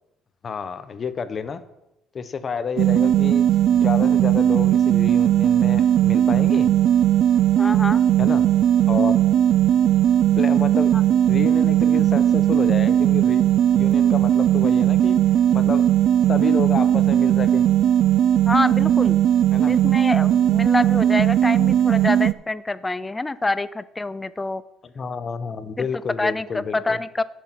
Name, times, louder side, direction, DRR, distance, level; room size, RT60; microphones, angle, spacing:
voice 1, 0.4-1.6 2.1-3.5 3.7-6.8 8.2-8.5 8.9-9.2 10.4-10.9 11.3-13.4 13.7-15.2 15.5-15.9 16.3-17.7 19.5-19.7 24.8-27.0, left 5 dB, 30° left, 12 dB, 0.8 m, -29 dB
sound 1, 2.8-22.3, right 11 dB, 55° right, 0.4 m, -18 dB
voice 2, 7.6-8.0 10.9-11.0 18.5-19.2 19.7-24.6 25.8-25.9 26.2-27.2, left 2 dB, 15° left, 16 dB, 0.4 m, -26 dB
10.5 x 6.3 x 5.9 m, 0.89 s
cardioid pair, 140°, 0 cm